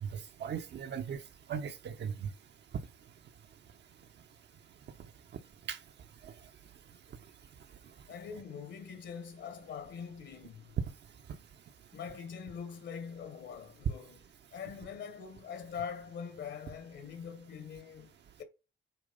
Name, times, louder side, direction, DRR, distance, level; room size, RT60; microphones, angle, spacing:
voice 1, 0.0-1.2 1.5-2.3 5.7-5.8 6.2-6.3, right 7 dB, 60° right, 1.1 m, -38 dB
voice 2, 8.1-10.8 11.9-14.2 14.5-18.4, left 7 dB, 70° left, 1.8 m, -43 dB
8.9 x 3.1 x 5.3 m
cardioid pair, 90°, 20 cm